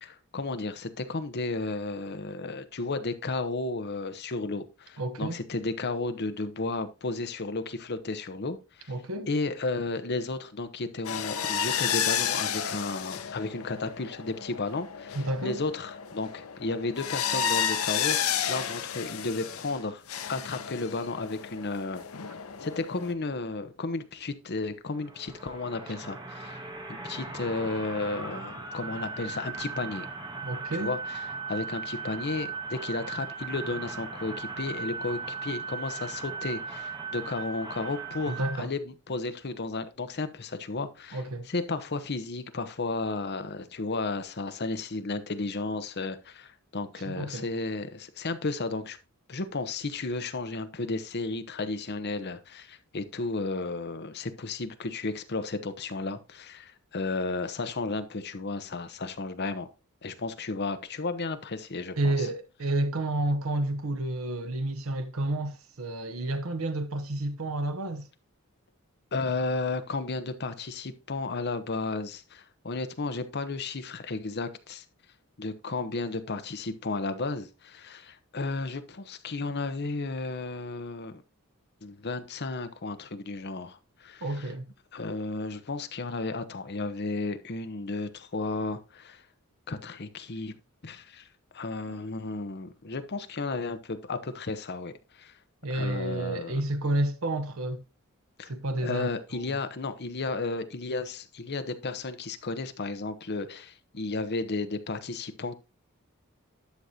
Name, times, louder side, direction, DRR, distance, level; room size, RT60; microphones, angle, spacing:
voice 1, 0.0-8.9 9.3-20.0 20.3-22.0 22.6-26.6 26.9-30.1 30.7-41.2 41.5-49.0 49.3-59.7 60.0-62.3 69.1-74.8 75.4-81.2 81.8-84.5 84.9-89.2 89.7-90.5 90.8-91.3 91.5-95.3 95.7-96.6 98.4-98.5 98.8-105.6, left 3 dB, 50° left, 0.9 m, -33 dB
voice 2, 5.0-5.4 8.9-9.3 15.1-15.6 30.4-30.9 38.3-38.7 41.1-41.5 47.1-47.5 62.0-68.1 84.2-84.7 91.9-92.0 95.6-97.8 98.5-99.1 99.3-99.6, right 1 dB, 70° right, 0.9 m, -30 dB
sound 1, 11.0-19.8 20.1-23.1, left 8 dB, 85° left, 0.8 m, -32 dB
sound 2, 24.9-38.6, right 5 dB, 20° right, 1.5 m, -38 dB
11.5 x 6.5 x 2.8 m
head